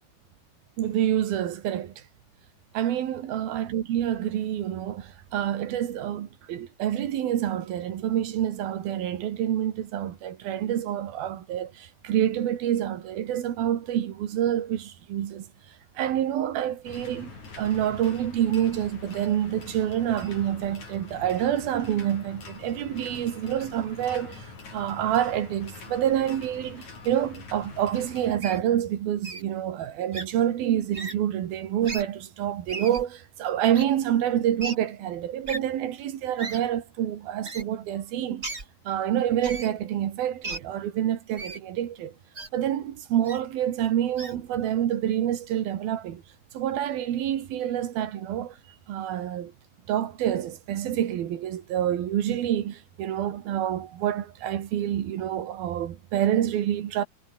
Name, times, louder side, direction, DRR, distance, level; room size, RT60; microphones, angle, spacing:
voice 1, 0.8-2.0 2.7-15.5 16.0-17.3 17.6-38.5 38.8-42.1 42.5-46.2 46.5-48.6 48.9-49.5 49.9-57.0, right 11 dB, 65° right, 3.5 m, -27 dB
sound 1, 16.8-28.4, left 4 dB, 45° left, 7.2 m, -44 dB
Wild animals, 28.4-28.6 29.2-29.4 30.1-30.3 30.9-31.2 31.8-32.0 32.7-33.0 33.7-33.8 34.6-34.7 35.5-35.6 36.4-36.6 37.4-37.6 38.4-38.7 39.4-39.7 40.4-40.6 41.4-41.6 42.3-42.5 43.2-43.4 44.2-44.3, right 3 dB, 20° right, 2.6 m, -35 dB
omnidirectional pair, 5.0 m